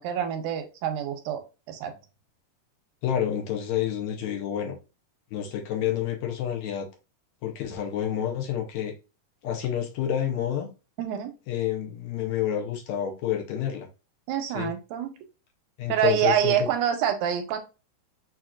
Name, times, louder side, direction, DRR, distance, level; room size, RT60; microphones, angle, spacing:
voice 1, 0.0-1.4 1.7-1.9 11.0-11.3 14.3-15.1 15.9-17.6, right 9 dB, 85° right, 2.1 m, -26 dB
voice 2, 3.0-4.8 5.3-6.9 7.4-8.9 9.4-10.7 11.5-13.9 14.6-14.7 15.8-16.7, left 10 dB, 75° left, 1.9 m, -29 dB
6.3 x 2.9 x 2.4 m
omnidirectional pair, 3.6 m